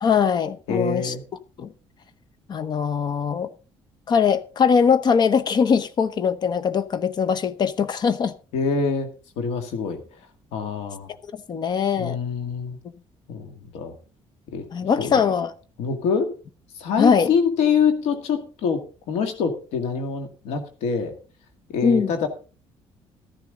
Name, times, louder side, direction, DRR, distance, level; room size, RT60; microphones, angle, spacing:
voice 1, 0.0-1.1 1.6-1.7 2.5-3.5 4.1-8.3 11.5-12.2 14.7-15.5 17.0-17.3 21.8-22.1, left 6 dB, 45° left, 0.9 m, -21 dB
voice 2, 0.7-1.2 8.5-9.1 9.4-10.0 10.5-11.1 12.0-12.8 13.3-13.9 14.5-14.6 15.0-15.1 15.8-16.3 16.8-18.8 19.1-21.1 21.7-22.3, left 6 dB, 90° left, 2.1 m, -25 dB
14.0 x 10.5 x 3.8 m
cardioid pair, 130°, 11 cm